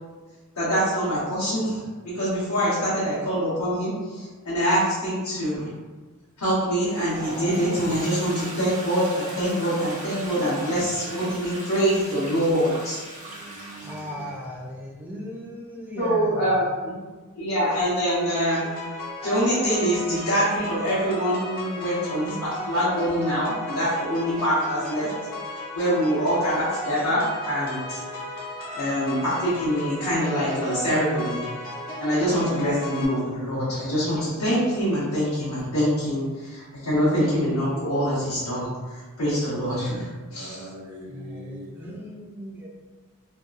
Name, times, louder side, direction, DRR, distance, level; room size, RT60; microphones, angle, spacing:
voice 1, 0.6-5.7 6.4-13.0 16.0-17.0 17.3-18.6 19.2-25.1 25.7-28.0 28.7-31.5 32.0-40.6, equal, 75° left, -11 dB, 0.9 m, -24 dB
Toilet flush, 6.7-14.4, right 1 dB, 35° right, 0.7 m, -39 dB
voice 2, 13.2-14.3 40.3-42.0, right 1 dB, 80° right, -2 dB, 0.5 m, -42 dB
voice 3, 13.8-16.7 41.1-42.7, equal, 10° right, -3 dB, 0.4 m, -37 dB
sound 1, 18.0-33.0, left 1 dB, 40° left, 0.6 m, -35 dB
2.7 x 2.3 x 2.4 m, 1.3 s
head